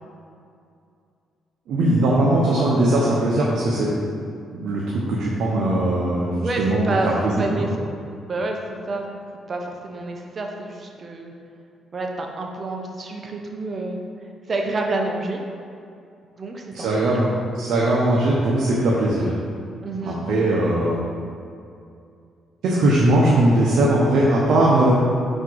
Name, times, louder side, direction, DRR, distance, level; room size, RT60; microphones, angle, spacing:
voice 1, 1.7-3.9 4.5-6.8 7.2-7.5 16.7-17.3 17.6-19.3 20.0-21.0 22.6-24.9, right 1 dB, 75° right, -5 dB, 0.9 m, -19 dB
voice 2, 6.3-7.1 7.4-7.7 8.2-9.1 9.5-11.3 11.9-14.0 14.5-15.4 16.4-17.2 19.8-20.2, right 2 dB, 40° right, 2 dB, 0.8 m, -28 dB
4.7 x 4.4 x 4.6 m, 2.4 s
cardioid pair, 90°, 0 cm